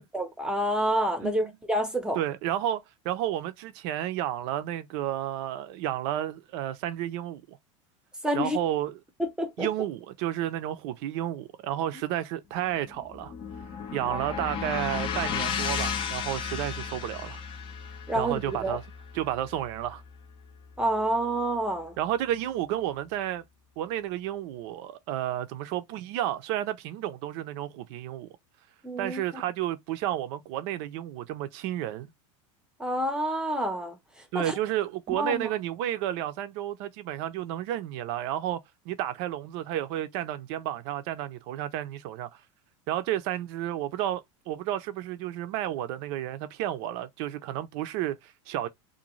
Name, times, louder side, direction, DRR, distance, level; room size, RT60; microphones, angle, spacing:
voice 1, 0.1-2.2 8.2-8.6 9.2-9.7 14.1-14.4 18.1-18.8 20.8-22.0 28.8-29.4 32.8-34.0 34.3-34.5 35.1-35.5, right 1 dB, 5° right, 0.7 m, -28 dB
voice 2, 1.2-1.5 2.1-7.6 8.3-9.0 9.6-13.3 13.9-17.4 18.1-18.8 19.1-20.0 22.0-23.4 23.8-28.3 29.0-32.1 34.3-38.6 38.9-42.3 42.9-48.7, right 12 dB, 60° right, 0.5 m, -31 dB
sound 1, 12.6-20.9, left 6 dB, 35° left, 0.6 m, -34 dB
2.5 x 2.2 x 3.0 m
supercardioid pair, 130°, 16 cm